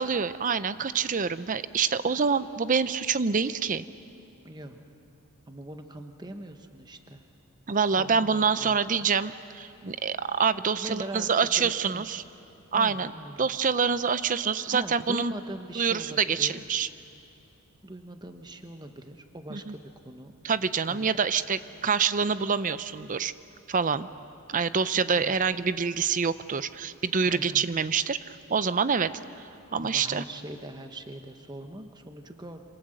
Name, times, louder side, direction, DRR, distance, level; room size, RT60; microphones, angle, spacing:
voice 1, 0.0-3.8 7.7-12.2 12.7-13.1 13.4-15.3 15.8-16.9 19.5-19.7 20.4-23.3 23.7-24.1 24.5-29.2 29.7-30.2, right 6 dB, 35° right, 14 dB, 0.6 m, -26 dB
voice 2, 4.4-4.8 5.5-7.2 8.0-8.8 10.7-11.3 11.6-12.1 12.7-13.5 14.7-16.6 17.8-20.3 20.9-21.1 25.1-25.3 27.2-27.6 29.8-32.6, right 1 dB, 20° right, 6 dB, 1.1 m, -41 dB
27.0 x 27.0 x 7.7 m, 2.6 s
head